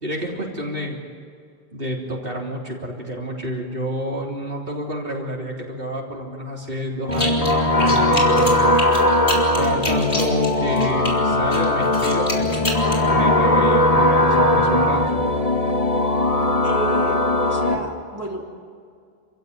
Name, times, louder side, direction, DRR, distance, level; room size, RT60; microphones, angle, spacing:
voice 1, 0.0-1.0 1.7-8.7 9.6-15.0, equal, 60° right, -2 dB, 3.8 m, -29 dB
sound 1, 7.1-7.5 7.8-11.1 11.5-13.0, left 1 dB, 75° left, 4.1 m, -28 dB
sound 2, 7.1-17.7, left 1 dB, 35° left, 1.6 m, -19 dB
voice 2, 16.6-18.5, right 2 dB, 15° right, -2 dB, 3.7 m, -30 dB
28.0 x 16.0 x 9.6 m, 2.2 s
omnidirectional pair, 1.0 m